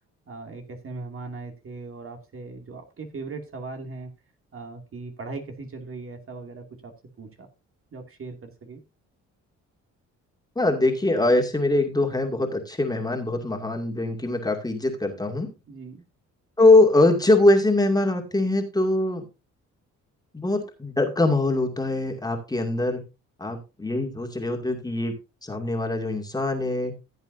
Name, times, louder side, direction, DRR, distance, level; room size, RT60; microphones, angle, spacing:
voice 1, 0.3-4.1 4.5-6.9 7.2-7.5 7.9-8.8 15.7-16.0, right 3 dB, 45° right, 5 dB, 2.3 m, -39 dB
voice 2, 10.6-15.5 16.6-19.2 20.3-23.0 23.4-25.1 25.4-26.9, left 2 dB, 15° left, 2 dB, 2.3 m, -22 dB
15.5 x 8.1 x 2.6 m, 0.27 s
cardioid pair, 90°, 30 cm